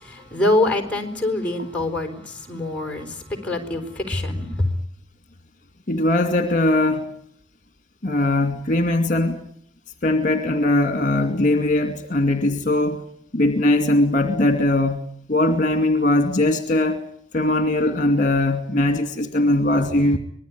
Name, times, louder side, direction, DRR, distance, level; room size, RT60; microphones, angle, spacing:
voice 1, 0.1-4.7, left 2 dB, 5° left, 5 dB, 4.4 m, -24 dB
voice 2, 5.9-7.1 8.0-9.5 10.0-13.0 13.3-15.0 15.3-17.0 17.3-20.2, left 1 dB, 40° left, 7 dB, 2.3 m, -20 dB
25.5 x 20.5 x 9.6 m, 0.66 s
head